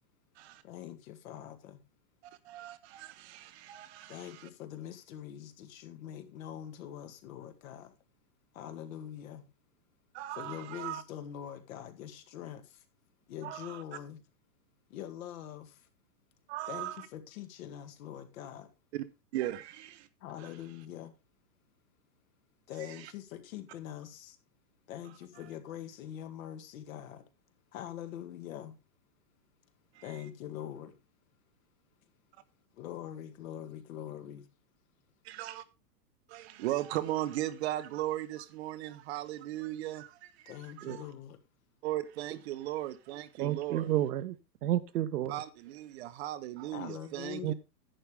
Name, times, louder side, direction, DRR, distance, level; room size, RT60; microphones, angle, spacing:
voice 1, 0.6-1.8 4.1-7.9 8.5-9.4 10.4-12.8 13.3-14.2 14.9-15.9 16.7-18.7 20.2-21.1 22.7-24.4 24.9-27.3 27.7-28.8 30.0-31.0 32.7-34.5 40.5-41.4 46.7-47.5, left 10 dB, 55° left, 1.9 m, -44 dB
voice 2, 2.2-4.5 10.1-11.0 13.4-13.8 16.5-17.1 18.9-19.1 19.3-20.1 20.4-20.6 22.8-23.1 25.4-25.5 29.9-30.2 35.2-35.6 36.3-41.0 41.8-43.9 45.3-47.5, right 14 dB, 40° right, 0.9 m, -38 dB
voice 3, 43.4-44.3 44.6-45.3 47.4-47.5, right 13 dB, 65° right, 1.1 m, -30 dB
11.0 x 8.8 x 3.3 m
hypercardioid pair, 145°, 49 cm